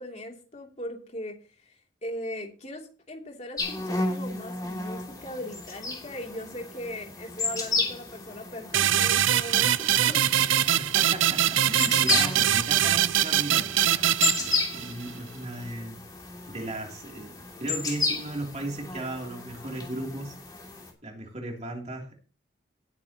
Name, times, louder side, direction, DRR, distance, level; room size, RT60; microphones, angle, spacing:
voice 1, 0.0-10.2, left 1 dB, 35° left, 1 dB, 2.9 m, -39 dB
sound 1, 3.6-20.9, left 3 dB, 20° left, 3.1 m, -33 dB
sound 2, 8.7-15.1, right 11 dB, 90° right, 0.6 m, -23 dB
voice 2, 10.8-16.0 16.5-20.4 21.0-22.1, right 2 dB, 35° right, 0 dB, 3.1 m, -36 dB
18.5 x 9.0 x 3.0 m, 0.35 s
head